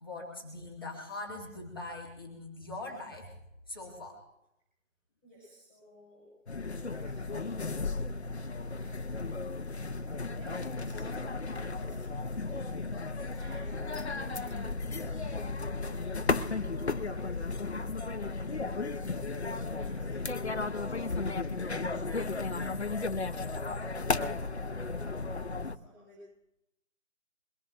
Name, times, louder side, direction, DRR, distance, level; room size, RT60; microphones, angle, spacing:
voice 1, 0.0-3.3 3.7-4.2 6.6-6.7 13.2-13.4, left 2 dB, 15° left, -2 dB, 1.4 m, -42 dB
voice 2, 5.2-6.3 6.8-8.4 8.7-9.2 10.3-12.1 13.3-18.9 19.3-20.3 20.8-21.5 22.0-22.9 23.3-26.3, equal, 5° right, -10 dB, 4.9 m, -54 dB
sound 1, 6.5-25.7, left 3 dB, 55° left, 0.8 m, -34 dB
22.5 x 18.0 x 2.6 m, 0.85 s
figure-of-eight pair, 160°, 39 cm